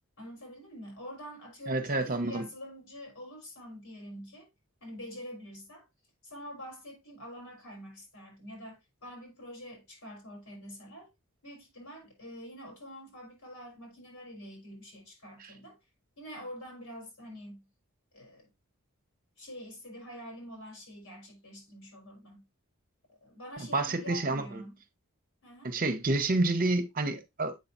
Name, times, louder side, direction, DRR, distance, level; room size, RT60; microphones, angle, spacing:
voice 1, 0.2-4.5 4.8-5.9 6.2-11.1 11.4-15.8 16.2-17.7 18.1-18.5 19.4-22.5 23.1-24.8 25.4-25.8, equal, 85° left, 4.3 m, -46 dB
voice 2, 1.7-2.4 23.7-24.6 25.6-27.6, right 2 dB, 40° right, 0.9 m, -29 dB
7.8 x 5.7 x 2.6 m
head